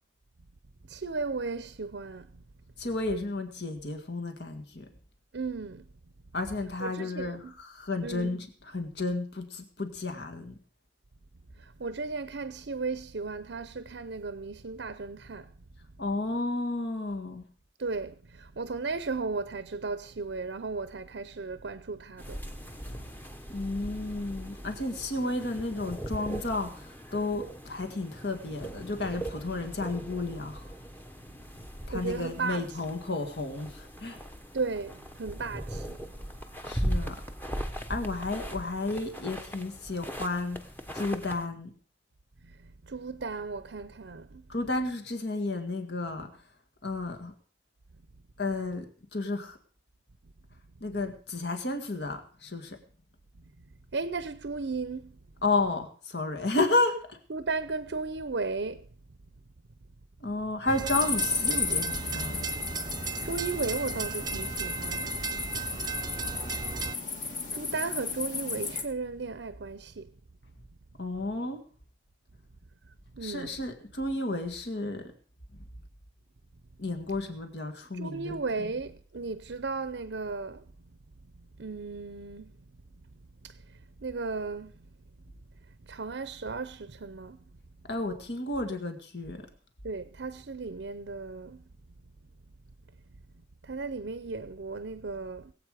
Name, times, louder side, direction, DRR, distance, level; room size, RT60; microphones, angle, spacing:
voice 1, 0.9-2.4 5.3-5.9 6.8-7.5 8.0-8.3 11.6-15.5 17.8-22.4 31.9-32.7 34.5-36.0 42.4-44.5 53.9-55.2 57.3-58.9 63.2-65.3 67.2-70.1 73.1-73.6 77.9-80.7 81.4-82.6 83.4-84.9 85.8-87.4 89.8-91.6 93.6-95.5, right 4 dB, 70° right, 0.7 m, -35 dB
voice 2, 2.8-4.9 6.3-10.6 16.0-17.4 22.9-23.0 23.5-30.7 31.9-34.2 36.7-37.2 37.9-40.6 40.9-41.7 44.5-46.3 46.8-47.3 48.4-49.6 50.8-52.8 55.4-57.2 60.2-62.4 71.0-71.6 73.2-75.0 76.8-78.7 87.9-89.4, left 2 dB, 60° left, 1.9 m, -32 dB
sound 1, 22.2-41.5, equal, 10° left, 1.0 m, -39 dB
sound 2, 60.7-67.0, right 4 dB, 20° right, 0.6 m, -35 dB
sound 3, 60.9-68.8, left 4 dB, 40° left, 2.0 m, -34 dB
21.0 x 8.3 x 4.9 m
head